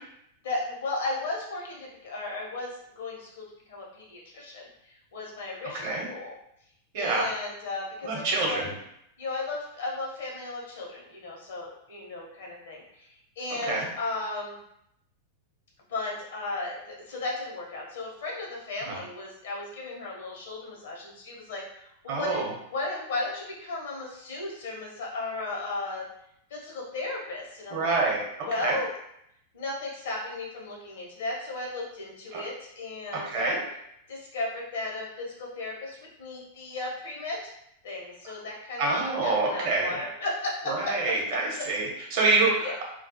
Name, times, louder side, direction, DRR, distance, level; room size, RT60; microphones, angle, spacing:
voice 1, 0.4-6.3 7.0-8.6 9.2-14.6 15.9-26.1 26.5-28.0 28.5-28.9 29.5-33.6 34.1-37.5 37.8-41.4 42.6-42.7, left 2 dB, 65° left, -2 dB, 0.7 m, -35 dB
voice 2, 5.7-6.1 6.9-7.3 8.0-8.7 13.6-13.9 18.9-19.0 22.1-22.5 27.7-28.8 32.3-32.4 33.1-33.6 38.8-40.0 40.7-42.8, right 3 dB, 55° right, -1 dB, 0.8 m, -27 dB
2.3 x 2.0 x 2.7 m, 0.76 s
figure-of-eight pair, 90°, 0 cm